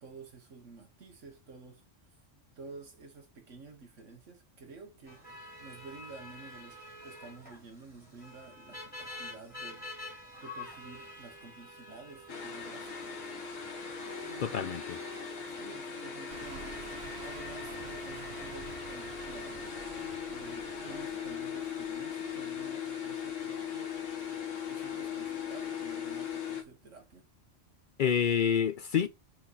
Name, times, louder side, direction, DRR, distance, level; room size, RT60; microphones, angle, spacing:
voice 1, 0.0-1.8 2.5-5.2 5.6-9.9 10.4-13.5 14.2-14.8 15.5-16.8 17.2-19.7 20.3-27.3, right 4 dB, 80° right, 1.5 m, -51 dB
sound 1, 5.1-22.9, left 2 dB, 5° left, 2.8 m, -49 dB
sound 2, 12.3-26.6, left 7 dB, 80° left, 1.5 m, -39 dB
voice 2, 14.4-15.0 28.0-29.1, left 8 dB, 60° left, 0.5 m, -28 dB
sound 3, 16.3-22.0, right 4 dB, 60° right, 1.4 m, -49 dB
4.5 x 4.3 x 5.5 m
omnidirectional pair, 1.3 m